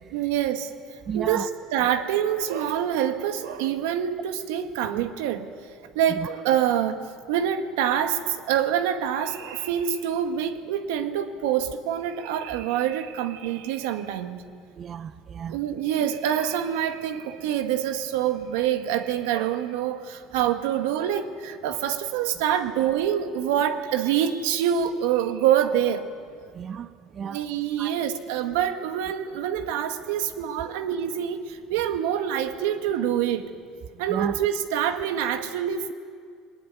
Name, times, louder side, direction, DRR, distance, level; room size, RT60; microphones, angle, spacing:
voice 1, 0.1-5.5 6.0-7.0 7.3-14.4 15.5-26.1 27.2-33.5 34.0-35.9, right 9 dB, 90° right, 1.7 m, -26 dB
voice 2, 1.1-1.5 14.8-15.6 26.6-26.9 27.2-27.4 27.8-27.9 34.1-34.3, right 7 dB, 35° right, 0.6 m, -32 dB
21.5 x 20.0 x 9.7 m
cardioid pair, 125°, 0 cm